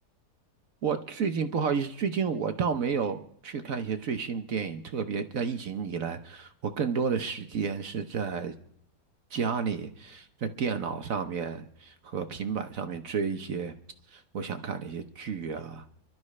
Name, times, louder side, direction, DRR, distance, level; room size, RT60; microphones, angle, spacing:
voice 1, 0.8-8.5 9.3-13.7 14.1-15.8, right 6 dB, 60° right, 8 dB, 1.2 m, -31 dB
30.0 x 12.0 x 3.2 m, 0.70 s
omnidirectional pair, 1.7 m